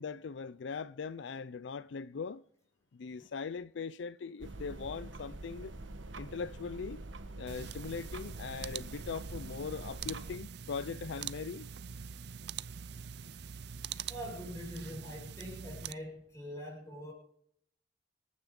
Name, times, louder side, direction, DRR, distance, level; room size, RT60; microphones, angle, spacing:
voice 1, 0.0-2.4 2.9-5.7 6.2-7.0 7.3-11.7, left 5 dB, 70° left, 0.4 m, -40 dB
sound 1, 4.4-10.4, right 2 dB, 75° right, 1.3 m, -46 dB
sound 2, 7.5-15.9, right 7 dB, 60° right, 0.5 m, -44 dB
voice 2, 14.1-17.1, equal, 15° left, 6.4 m, -44 dB
25.5 x 9.3 x 3.8 m
head